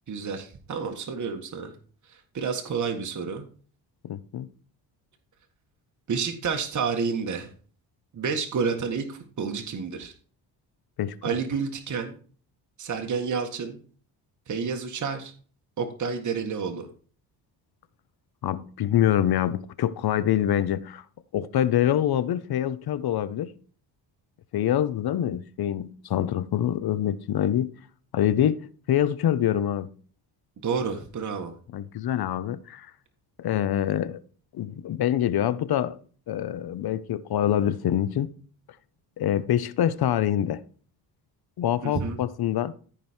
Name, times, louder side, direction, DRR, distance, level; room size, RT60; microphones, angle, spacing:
voice 1, 0.1-1.7 2.1-3.5 6.1-7.5 8.1-10.1 11.2-12.1 12.8-13.8 14.5-15.3 15.8-16.9 30.6-31.5 41.8-42.2, right 5 dB, 45° right, 1.8 m, -30 dB
voice 2, 4.0-4.5 11.0-11.3 18.4-21.0 21.3-23.5 24.5-27.7 28.1-28.6 28.9-29.9 31.7-32.9 33.4-34.2 34.5-36.0 36.3-38.3 39.2-40.6 41.6-42.7, left 11 dB, 60° left, 0.9 m, -25 dB
14.5 x 5.0 x 4.5 m
cardioid pair, 95°, 43 cm